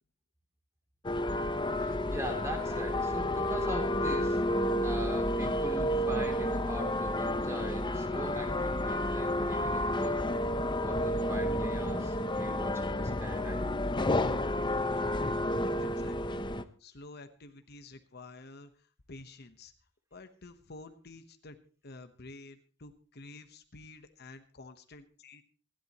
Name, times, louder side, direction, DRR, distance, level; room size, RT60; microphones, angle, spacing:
sound 1, 1.0-16.6, left 1 dB, 25° left, 0.7 m, -31 dB
voice 1, 1.8-4.4 4.8-10.2 10.8-13.6, equal, 15° right, 3 dB, 3.0 m, -40 dB
voice 2, 15.8-16.4 16.8-19.7 20.1-21.6 21.8-25.4, left 2 dB, 55° left, 8 dB, 1.1 m, -50 dB
27.0 x 11.5 x 3.0 m, 0.39 s
head